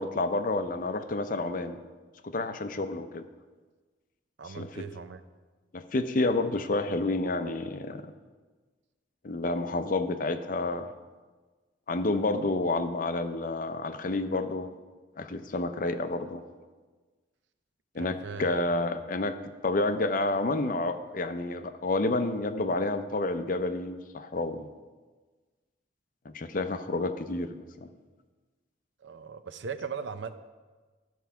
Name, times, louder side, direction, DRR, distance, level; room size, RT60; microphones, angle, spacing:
voice 1, 0.0-1.8 2.2-3.2 4.6-4.7 5.7-8.1 9.2-10.9 11.9-14.7 15.2-16.4 17.9-19.4 19.6-24.7 26.3-27.9, left 2 dB, 45° left, 9 dB, 0.5 m, -29 dB
voice 2, 4.4-5.2 18.0-19.1 29.0-30.3, right 5 dB, 70° right, 10 dB, 0.6 m, -39 dB
13.5 x 4.6 x 5.7 m, 1.4 s
head